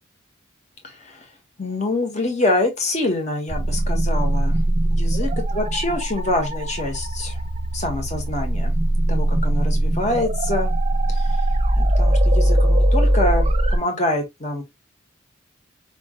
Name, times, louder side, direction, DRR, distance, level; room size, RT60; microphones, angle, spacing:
voice 1, 0.8-1.3 1.6-4.6 4.9-7.4 7.7-8.7 9.1-10.7 11.1-11.4 11.8-14.6, left 2 dB, 35° left, 1.7 m, -25 dB
sound 1, 3.5-13.8, right 1 dB, 30° right, 0.9 m, -20 dB
5.0 x 3.5 x 3.0 m
head